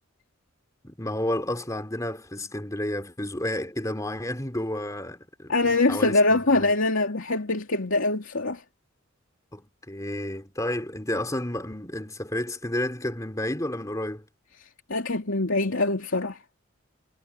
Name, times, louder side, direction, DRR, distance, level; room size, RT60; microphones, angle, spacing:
voice 1, 0.8-6.2 6.5-6.7 9.5-14.3, left 1 dB, 15° left, 3.3 m, -31 dB
voice 2, 5.5-8.6 14.9-16.4, left 2 dB, 75° left, 2.7 m, -23 dB
head